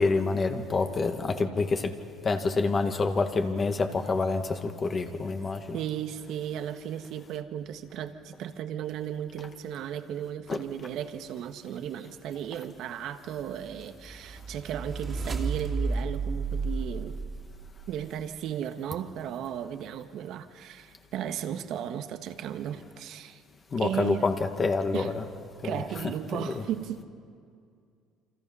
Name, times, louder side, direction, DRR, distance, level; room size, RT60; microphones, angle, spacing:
voice 1, 0.0-1.9 2.2-5.8 10.5-10.6 23.7-25.2 25.6-26.0 26.3-26.6, left 3 dB, 30° left, 5 dB, 1.9 m, -27 dB
voice 2, 5.7-17.2 17.9-23.4 23.8-24.3 24.9-25.1 25.6-27.0, right 10 dB, 65° right, 8 dB, 1.4 m, -35 dB
sound 1, 13.8-18.0, right 4 dB, 30° right, 2.7 m, -32 dB
28.5 x 25.5 x 5.6 m, 2.3 s
supercardioid pair, 95°, 0 cm